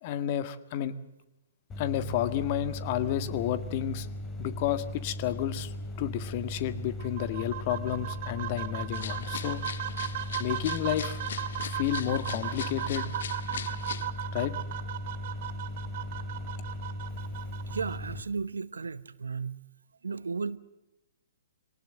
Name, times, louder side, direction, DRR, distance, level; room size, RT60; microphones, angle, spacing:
voice 1, 0.0-0.9 1.8-4.1 4.4-9.6 10.4-11.2 11.6-13.1 14.3-14.5, left 11 dB, 45° left, 1.6 m, -31 dB
sound 1, 1.7-18.2, left 1 dB, 20° left, 4.0 m, -38 dB
sound 2, 7.0-18.0, right 13 dB, 50° right, 1.0 m, -37 dB
sound 3, 8.9-14.1, left 8 dB, 65° left, 1.4 m, -41 dB
voice 2, 17.7-19.6 20.0-20.6, right 5 dB, 80° right, 1.0 m, -34 dB
23.5 x 18.5 x 7.7 m
hypercardioid pair, 125°, 0 cm